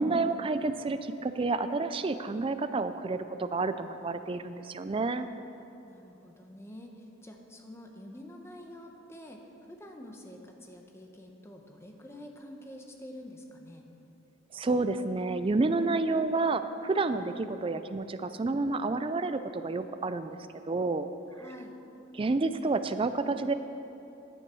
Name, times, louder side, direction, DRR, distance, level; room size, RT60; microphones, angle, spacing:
voice 1, 0.0-5.3 14.5-20.4 20.7-21.1 22.1-23.5, right 3 dB, 25° right, 11 dB, 0.3 m, -29 dB
voice 2, 5.8-13.8 21.3-21.8, left 1 dB, 10° left, 2 dB, 0.9 m, -47 dB
10.0 x 9.7 x 6.2 m, 3.0 s
head